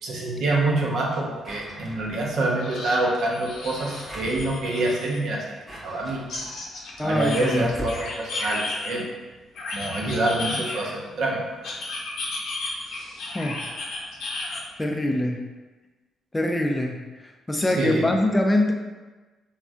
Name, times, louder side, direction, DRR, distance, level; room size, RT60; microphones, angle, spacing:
voice 1, 0.0-5.4 5.8-6.2 7.0-9.0 9.7-11.4 17.6-18.1, right 2 dB, 70° right, -2 dB, 0.6 m, -26 dB
sound 1, 1.1-1.2 1.6-1.7 2.6-5.2 6.3-9.0 9.5-11.1 11.6-14.6, left 2 dB, 75° left, 0.5 m, -34 dB
Drawer open or close, 1.4-2.4 3.4-4.5 5.4-8.0, right 1 dB, 15° right, 0.8 m, -40 dB
voice 2, 7.0-7.7 13.3-13.6 14.8-15.4 16.3-18.7, left 1 dB, 15° left, 3 dB, 0.4 m, -24 dB
3.4 x 2.2 x 2.5 m, 1.2 s
cardioid pair, 90°, 0 cm